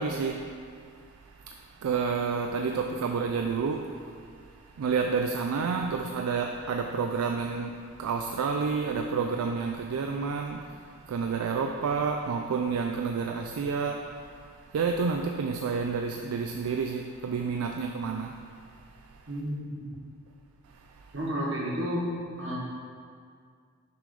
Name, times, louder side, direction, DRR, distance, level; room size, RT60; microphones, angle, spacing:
voice 1, 0.0-19.3 20.7-21.1, right 5 dB, 90° right, 3 dB, 0.3 m, -30 dB
voice 2, 19.3-20.0 21.1-22.0 22.4-22.6, equal, 60° right, -4 dB, 1.3 m, -31 dB
6.7 x 3.2 x 5.3 m, 2.1 s
head